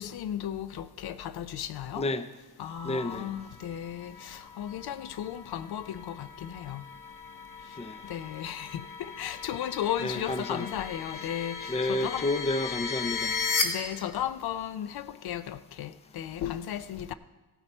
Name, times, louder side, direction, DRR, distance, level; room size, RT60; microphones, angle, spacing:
voice 1, 0.0-2.1 2.6-6.8 7.7-7.8 8.0-12.3 13.6-17.1, left 10 dB, 75° left, 0.6 m, -35 dB
voice 2, 2.0-2.3 2.8-3.3 7.8-8.0 10.0-10.7 11.7-13.4, left 2 dB, 15° left, 0.6 m, -30 dB
sound 1, 2.7-13.6, left 5 dB, 55° left, 1.5 m, -37 dB
16.0 x 9.1 x 4.3 m
cardioid pair, 120°, 38 cm